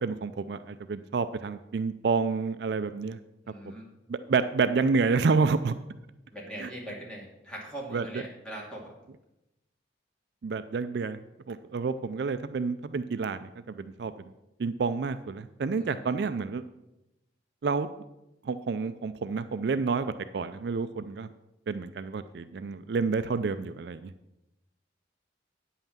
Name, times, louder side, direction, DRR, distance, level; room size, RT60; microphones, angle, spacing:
voice 1, 0.0-3.2 4.1-5.7 6.6-6.7 7.9-8.0 10.4-11.2 11.5-14.1 14.6-16.6 17.6-17.9 18.4-20.1 20.3-21.3 21.7-24.1, right 4 dB, 60° right, 12 dB, 0.4 m, -29 dB
voice 2, 3.4-3.9 6.3-8.9 15.8-16.0, right 1 dB, 5° left, -4 dB, 2.4 m, -41 dB
9.1 x 5.7 x 7.2 m, 0.93 s
head